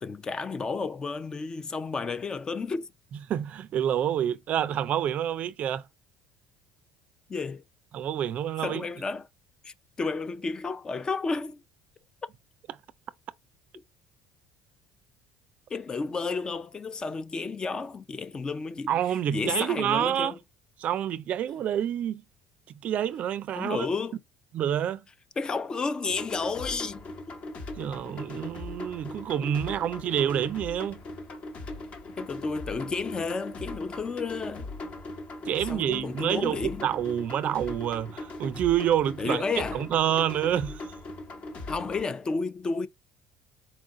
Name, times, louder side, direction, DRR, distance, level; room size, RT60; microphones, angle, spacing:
voice 1, 0.0-2.9 7.3-7.6 8.6-9.3 9.6-11.6 15.7-18.9 19.3-20.4 23.6-24.2 25.4-27.4 32.2-34.7 35.7-36.9 39.2-39.8 41.7-42.9, left 4 dB, 25° left, 0.4 m, -32 dB
voice 2, 3.3-5.8 7.9-8.9 18.9-20.3 20.8-22.2 22.7-23.9 24.5-25.0 27.8-31.0 35.4-39.4 39.7-40.9, right 10 dB, 50° right, 0.4 m, -28 dB
sound 1, 26.0-42.0, left 2 dB, 45° left, 1.1 m, -39 dB
4.4 x 2.4 x 3.6 m
cardioid pair, 110°, 3 cm